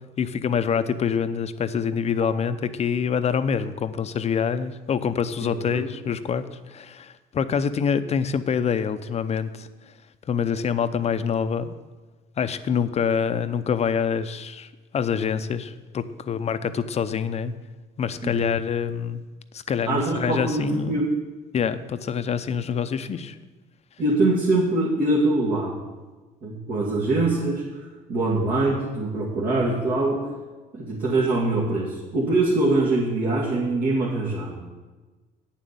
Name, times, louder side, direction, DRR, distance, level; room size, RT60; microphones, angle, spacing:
voice 1, 0.2-9.7 10.3-11.7 12.4-17.5 18.0-19.2 19.5-21.0 21.5-23.4, left 7 dB, 40° left, 11 dB, 0.6 m, -26 dB
voice 2, 5.5-5.9 18.2-18.3 19.9-21.0 24.0-25.8 26.4-27.8 28.1-30.3 30.7-34.6, right 2 dB, 60° right, -7 dB, 2.4 m, -23 dB
9.1 x 7.3 x 6.9 m, 1.3 s
cardioid pair, 110°, 17 cm